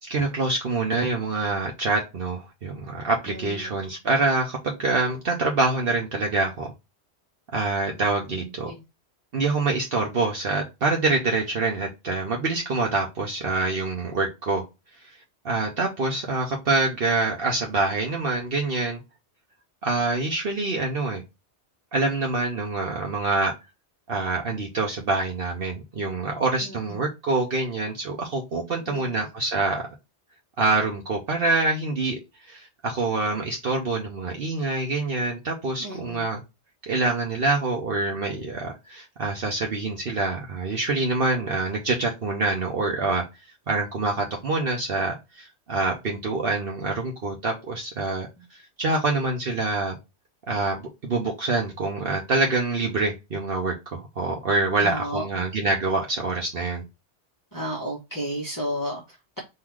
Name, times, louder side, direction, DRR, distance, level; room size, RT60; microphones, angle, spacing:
voice 1, 0.0-6.7 7.5-8.7 9.3-14.6 15.0-15.2 15.4-19.0 19.8-21.2 21.9-23.5 24.1-29.9 30.6-36.4 36.9-43.2 43.7-48.3 48.8-50.0 50.5-56.8, right 3 dB, 60° right, 1.1 m, -26 dB
voice 2, 3.3-3.8 8.3-8.8 26.6-27.0 28.9-29.0 35.8-36.3 54.8-55.4 57.5-59.4, equal, 20° left, 1.2 m, -33 dB
3.8 x 2.7 x 4.6 m
omnidirectional pair, 1.1 m